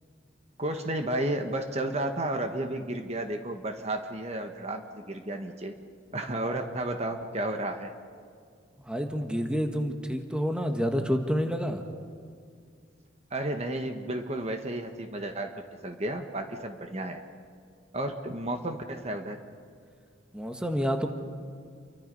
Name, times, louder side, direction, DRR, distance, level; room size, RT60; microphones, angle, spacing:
voice 1, 0.6-5.7 6.1-7.9 13.3-17.2 17.9-19.4, right 1 dB, 35° right, 5 dB, 1.4 m, -32 dB
voice 2, 8.8-11.8 20.3-21.1, equal, 5° right, 4 dB, 1.6 m, -28 dB
29.0 x 24.0 x 5.5 m, 2.2 s
head